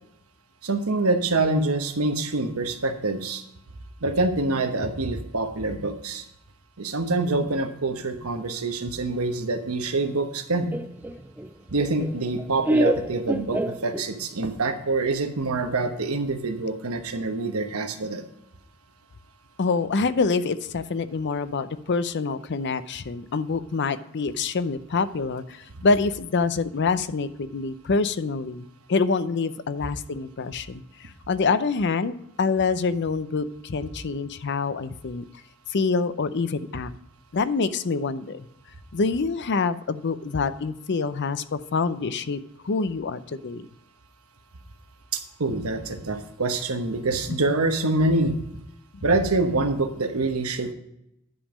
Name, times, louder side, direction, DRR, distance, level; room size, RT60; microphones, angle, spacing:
voice 1, 0.6-3.4 4.0-6.2 6.8-10.7 11.7-18.2 45.1-48.4 49.0-50.7, right 2 dB, 85° right, 7 dB, 1.1 m, -25 dB
Laughter, 10.7-14.4, right 1 dB, 10° right, 0.3 m, -27 dB
voice 2, 19.6-35.2 35.7-36.9 37.3-38.5 38.9-43.7 47.3-47.4, left 4 dB, 55° left, 13 dB, 0.5 m, -26 dB
10.0 x 5.4 x 4.9 m, 0.83 s
head